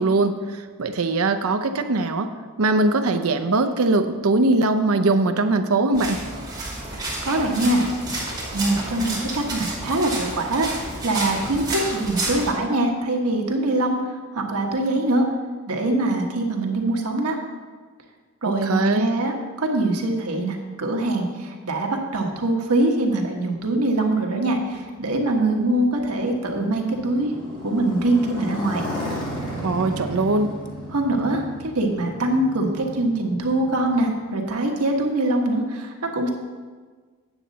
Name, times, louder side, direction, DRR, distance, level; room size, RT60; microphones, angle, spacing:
voice 1, 0.0-2.3 2.6-6.2 18.6-19.1 29.6-30.5, right 2 dB, 70° right, 8 dB, 0.6 m, -21 dB
sound 1, 5.9-12.5, right 2 dB, 20° right, 2.7 m, -30 dB
voice 2, 7.2-7.8 8.5-10.7 11.0-14.0 14.3-15.3 15.7-17.4 18.4-27.3 27.6-28.8 30.9-36.3, right 2 dB, 90° right, 1 dB, 1.3 m, -23 dB
Motorcycle, 24.7-34.6, equal, 20° left, 2.2 m, -34 dB
8.9 x 7.5 x 4.0 m, 1.5 s
head